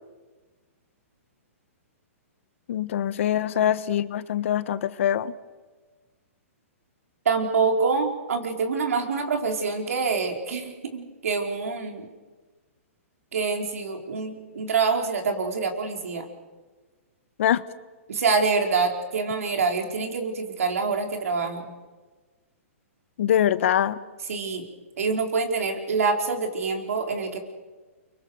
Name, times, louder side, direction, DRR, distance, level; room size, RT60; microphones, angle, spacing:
voice 1, 2.7-5.3 17.4-17.6 23.2-24.0, left 10 dB, 60° left, 14 dB, 1.4 m, -23 dB
voice 2, 7.2-12.0 13.3-16.2 18.1-21.7 24.3-24.6 25.0-27.4, right 4 dB, 75° right, 3 dB, 4.7 m, -26 dB
29.5 x 24.0 x 6.6 m, 1.3 s
hypercardioid pair, 140°, 8 cm